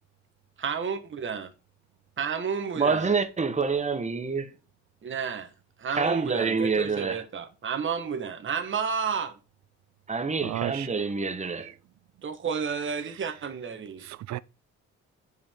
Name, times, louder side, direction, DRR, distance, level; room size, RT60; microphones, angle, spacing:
voice 1, 0.6-1.5 2.2-3.1 5.0-5.5 5.8-9.4 12.2-14.0, right 6 dB, 40° right, 1.3 m, -31 dB
voice 2, 2.8-4.5 6.0-7.2 10.1-11.7, right 5 dB, 25° right, 1.0 m, -27 dB
voice 3, 10.4-10.9 11.6-11.7 13.0-13.1 14.0-14.4, right 15 dB, 65° right, 0.5 m, -34 dB
9.4 x 5.3 x 3.6 m
cardioid pair, 90°, 30 cm